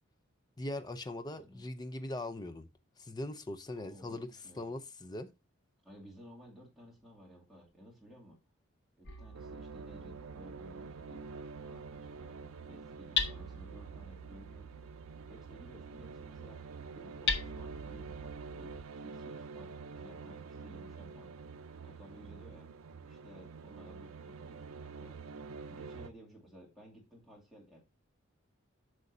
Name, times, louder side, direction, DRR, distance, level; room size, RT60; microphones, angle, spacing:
voice 1, 0.6-2.7 3.0-5.3, left 1 dB, 20° left, 0.5 m, -41 dB
voice 2, 1.3-1.6 3.8-4.8 5.8-8.4 9.0-14.7 15.3-16.6 16.9-21.4 21.8-22.7 23.1-25.2 25.7-27.8, equal, ahead, 2.4 m, -56 dB
Hammer, 9.1-18.8, left 4 dB, 55° left, 1.1 m, -41 dB
sound 1, 9.3-26.1, right 4 dB, 85° right, 0.5 m, -47 dB
8.0 x 6.3 x 2.7 m
head